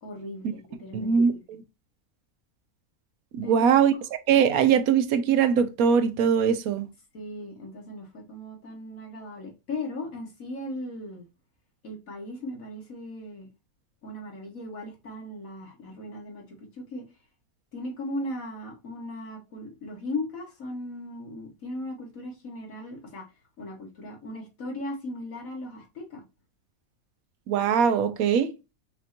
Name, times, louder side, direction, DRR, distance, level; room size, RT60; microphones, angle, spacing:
voice 1, 0.0-1.4 3.4-3.7 7.1-11.3 11.8-13.5 14.0-17.1 17.7-23.3 23.6-26.2, left 1 dB, 65° left, 1.7 m, -37 dB
voice 2, 0.9-1.6 3.3-3.9 4.3-6.9 27.5-28.5, right 7 dB, 75° right, 1.1 m, -21 dB
6.0 x 2.8 x 2.5 m
omnidirectional pair, 1.6 m